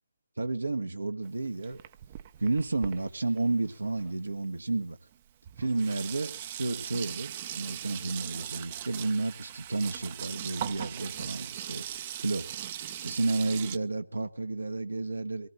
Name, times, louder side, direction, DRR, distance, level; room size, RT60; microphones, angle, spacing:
voice 1, 0.4-1.8 2.4-5.0 5.6-11.8 12.2-12.5 13.0-15.5, right 3 dB, 70° right, 8 dB, 1.3 m, -31 dB
Sink (filling or washing), 1.2-4.4 5.1-5.2 5.5-13.8, right 11 dB, 30° right, 0.7 m, -40 dB
24.0 x 17.5 x 2.4 m, 0.35 s
figure-of-eight pair, 140°, 0 cm